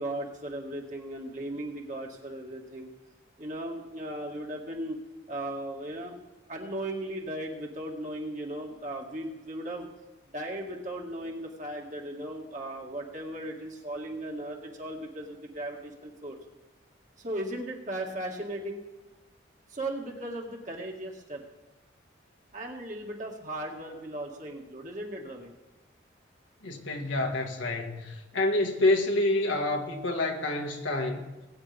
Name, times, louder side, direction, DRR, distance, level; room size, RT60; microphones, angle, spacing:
voice 1, 0.0-2.9 3.4-5.0 5.3-6.2 6.5-9.9 10.3-16.4 17.2-18.8 19.7-21.4 22.5-25.5, right 1 dB, 40° right, 0 dB, 2.0 m, -37 dB
voice 2, 26.6-31.4, left 2 dB, 80° left, 2 dB, 1.8 m, -28 dB
20.5 x 9.4 x 3.5 m, 1.1 s
head